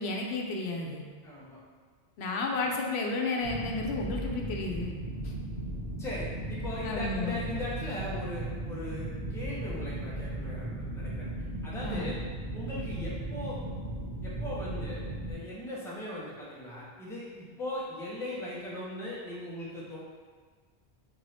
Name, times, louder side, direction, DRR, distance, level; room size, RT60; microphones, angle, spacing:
voice 1, 0.0-1.0 2.2-4.9 5.2-5.3 6.8-7.4 11.8-12.1, left 3 dB, 85° left, 1 dB, 0.8 m, -32 dB
voice 2, 1.2-1.6 6.0-11.3 11.6-12.2 12.5-13.6 14.2-20.0, left 1 dB, 5° left, -7 dB, 0.6 m, -39 dB
sound 1, 3.4-15.3, right 1 dB, 45° right, 1.8 m, -36 dB
4.4 x 2.6 x 3.2 m, 1.5 s
omnidirectional pair, 1.1 m